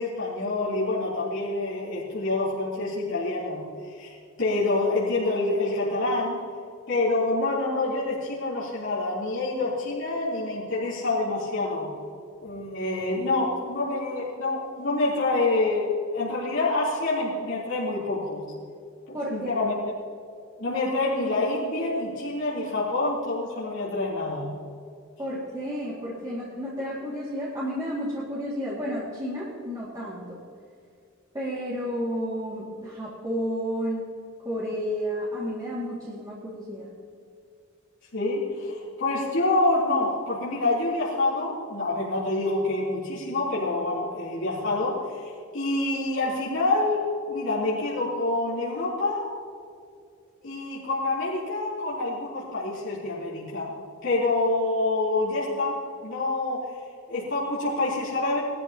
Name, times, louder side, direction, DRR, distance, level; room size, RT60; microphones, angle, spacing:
voice 1, 0.0-3.6 3.9-6.4 6.9-11.9 12.4-18.4 19.1-19.9 20.6-24.4 38.1-45.2 45.5-47.0 47.3-49.3 50.4-53.7 54.0-56.6 57.1-58.4, left 2 dB, 60° left, -9 dB, 3.6 m, -27 dB
voice 2, 19.1-19.5 25.2-30.4 31.3-34.1 34.4-36.9, equal, 20° right, -8 dB, 2.4 m, -31 dB
20.5 x 13.0 x 3.0 m, 2.3 s
head